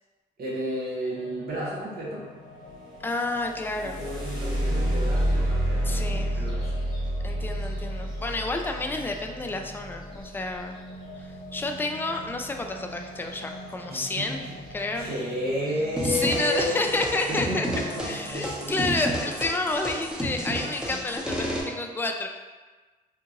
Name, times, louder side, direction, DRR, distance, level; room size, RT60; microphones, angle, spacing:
voice 1, 0.4-2.2 3.8-6.7 13.9-14.6 14.9-16.9 17.3-19.3 20.5-20.8, equal, 70° right, -6 dB, 1.2 m, -32 dB
sound 1, 1.1-18.5, left 1 dB, 55° left, 1.1 m, -44 dB
voice 2, 3.0-4.0 5.8-6.5 7.2-10.8 11.2-15.1 16.0-17.7 18.1-22.3, left 2 dB, 10° left, 3 dB, 0.4 m, -30 dB
sound 2, 3.3-11.2 13.2-13.4 13.8-14.4 15.0-15.1 15.6-15.9, right 1 dB, 30° right, 1.4 m, -29 dB
sound 3, 16.0-21.6, equal, 5° right, 0.8 m, -31 dB
3.7 x 2.5 x 2.9 m, 1.3 s
cardioid pair, 65°, 17 cm